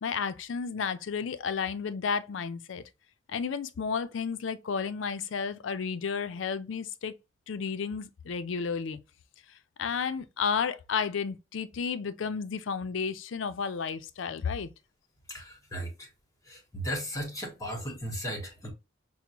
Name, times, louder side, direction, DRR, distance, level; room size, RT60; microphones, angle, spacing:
voice 1, 0.0-2.8 3.3-7.1 7.5-9.0 9.8-14.7, left 6 dB, 90° left, 0.5 m, -32 dB
voice 2, 15.3-16.1 16.5-18.7, equal, 15° left, 1.1 m, -36 dB
5.9 x 2.1 x 2.8 m
head